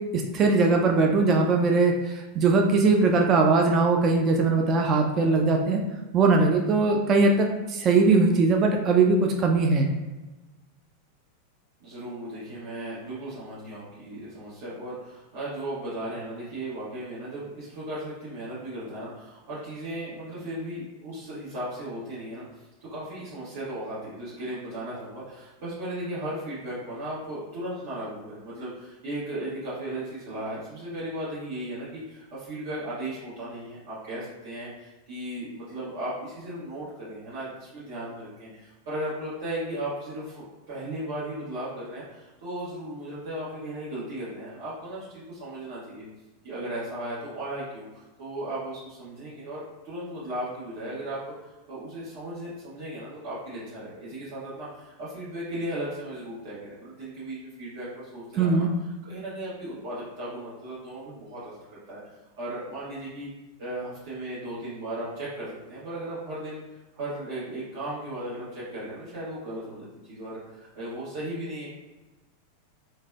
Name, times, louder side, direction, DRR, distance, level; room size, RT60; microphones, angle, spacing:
voice 1, 0.3-5.8 6.1-9.9 58.4-58.7, right 3 dB, 35° right, 2 dB, 0.3 m, -21 dB
voice 2, 11.8-22.4 22.8-46.0 46.4-58.7 59.0-61.5 61.9-62.0 62.4-63.3 63.6-66.6 66.9-71.7, right 1 dB, 55° right, -10 dB, 1.1 m, -36 dB
3.1 x 2.1 x 2.3 m, 1.1 s
figure-of-eight pair, 90°, 0 cm